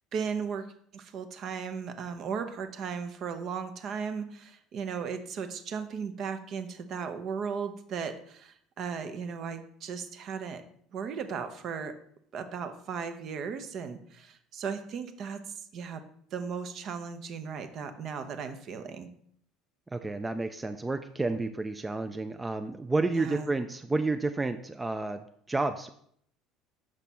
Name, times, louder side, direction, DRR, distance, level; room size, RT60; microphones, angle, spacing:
voice 1, 0.1-0.7 0.9-10.6 10.9-11.9 12.3-16.0 16.3-19.1 23.1-23.5, right 6 dB, 50° right, 8 dB, 0.7 m, -36 dB
voice 2, 19.9-25.2 25.5-25.9, right 3 dB, 15° right, 7 dB, 0.4 m, -30 dB
6.1 x 5.4 x 4.2 m, 0.65 s
figure-of-eight pair, 60°, 0 cm